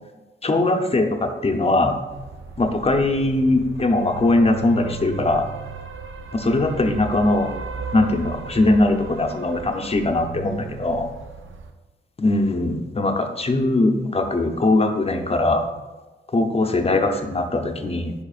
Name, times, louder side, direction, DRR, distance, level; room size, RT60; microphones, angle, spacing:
voice 1, 0.4-2.0 2.6-5.5 6.3-7.5 7.9-11.1 12.2-15.6 16.3-18.1, left 2 dB, 30° left, 4 dB, 0.7 m, -20 dB
sound 1, 2.1-11.7, right 5 dB, 75° right, 0.6 m, -36 dB
10.0 x 5.1 x 2.5 m, 1.2 s
wide cardioid pair, 115°, 20 cm